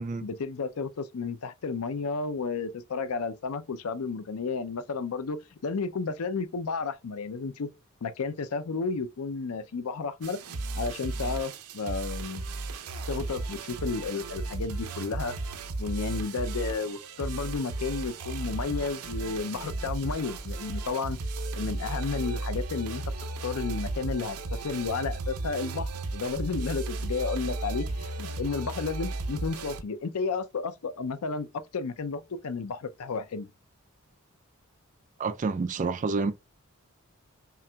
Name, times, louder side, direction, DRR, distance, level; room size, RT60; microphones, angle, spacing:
voice 1, 0.2-7.7 8.0-10.4 10.7-12.4 13.1-15.4 15.8-21.2 21.5-23.0 23.4-33.5, left 4 dB, 80° left, 0.5 m, -32 dB
sound 1, 10.2-29.8, right 2 dB, 90° right, 0.6 m, -35 dB
voice 2, 35.2-36.3, right 4 dB, 35° right, 0.3 m, -28 dB
5.6 x 2.5 x 2.2 m
head